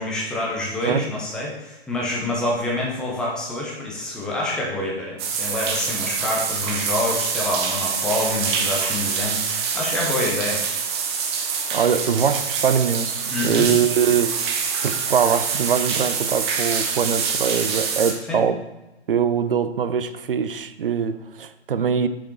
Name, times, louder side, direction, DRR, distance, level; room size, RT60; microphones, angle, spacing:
voice 1, 0.0-10.6 13.3-13.7 18.3-18.4, left 1 dB, ahead, -3 dB, 0.5 m, -27 dB
sound 1, 5.2-18.1, right 6 dB, 25° right, 0.9 m, -25 dB
voice 2, 11.7-14.6 14.8-18.6 19.1-22.1, right 7 dB, 55° right, 12 dB, 0.6 m, -22 dB
7.4 x 5.0 x 4.5 m, 1.0 s
figure-of-eight pair, 135°, 33 cm